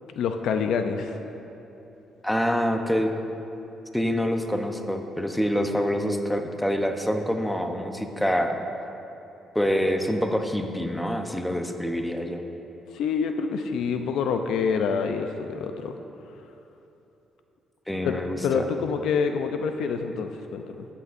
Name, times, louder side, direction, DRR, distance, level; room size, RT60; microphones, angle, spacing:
voice 1, 0.2-1.2 12.9-16.0 18.0-20.9, left 6 dB, 80° left, 6 dB, 0.4 m, -27 dB
voice 2, 2.2-3.1 3.9-8.6 9.5-12.4 17.9-18.7, equal, 5° left, 5 dB, 0.7 m, -26 dB
13.5 x 8.4 x 2.5 m, 3.0 s
cardioid pair, 90°, 0 cm